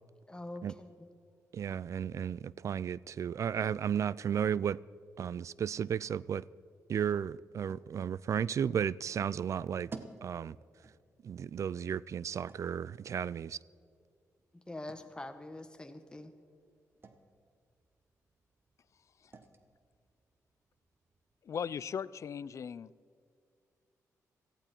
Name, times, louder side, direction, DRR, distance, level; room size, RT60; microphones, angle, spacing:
voice 1, 0.3-1.1 14.7-16.3, left 1 dB, 15° left, 1.5 m, -44 dB
voice 2, 1.5-4.8 5.2-6.5 6.9-9.9 10.2-10.6 11.2-13.6, right 8 dB, 60° right, 0.3 m, -34 dB
sound 1, 6.8-22.0, right 3 dB, 40° right, 1.3 m, -58 dB
voice 3, 21.5-22.9, left 7 dB, 55° left, 0.4 m, -38 dB
18.0 x 15.0 x 4.5 m
cardioid pair, 80°, 6 cm